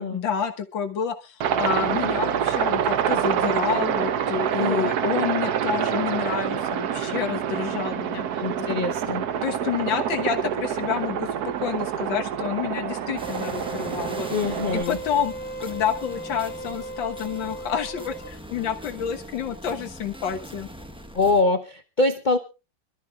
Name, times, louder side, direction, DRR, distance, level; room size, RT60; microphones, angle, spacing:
voice 1, 0.0-8.4 9.1-15.3 15.6-20.7, left 8 dB, 85° left, 6 dB, 2.0 m, -29 dB
Aircraft, 1.4-14.8, right 8 dB, 60° right, 1.3 m, -26 dB
voice 2, 4.6-4.9 8.4-9.3 14.3-15.0 21.1-22.4, left 3 dB, 40° left, 7 dB, 0.7 m, -24 dB
sound 1, 13.2-21.4, equal, 5° right, 0.7 m, -41 dB
sound 2, 13.2-18.3, right 2 dB, 35° right, 3.5 m, -37 dB
26.5 x 13.0 x 2.4 m, 0.30 s
omnidirectional pair, 2.0 m